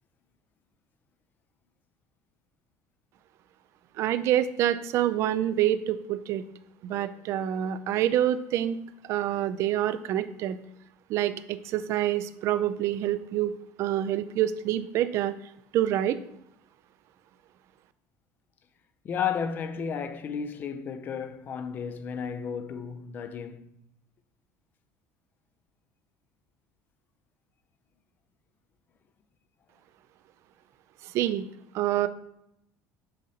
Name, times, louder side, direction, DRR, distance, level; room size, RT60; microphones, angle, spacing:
voice 1, 4.0-6.4 6.8-8.8 9.1-10.6 11.1-13.5 13.8-15.3 15.7-16.2 31.0-31.4 31.7-32.1, right 12 dB, 50° right, 0.4 m, -26 dB
voice 2, 19.0-23.7, left 7 dB, 30° left, 0.5 m, -33 dB
6.5 x 6.4 x 2.8 m
cardioid pair, 165°, 6 cm